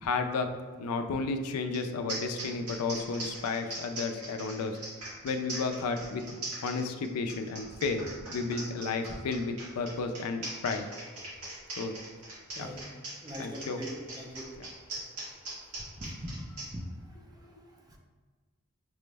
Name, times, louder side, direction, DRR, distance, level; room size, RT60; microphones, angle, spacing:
voice 1, 0.0-0.5 0.8-4.8 5.2-6.2 6.6-8.0 8.3-10.9 11.8-11.9 12.6-12.7 13.4-13.8 14.6-14.7, left 4 dB, 80° left, 6 dB, 0.4 m, -32 dB
sound 1, 1.7-1.8 2.1-16.7, right 2 dB, 90° right, 1.3 m, -40 dB
voice 2, 13.2-14.5 16.0-16.4, equal, 15° right, 0 dB, 0.5 m, -41 dB
6.0 x 2.0 x 3.3 m, 1.4 s
head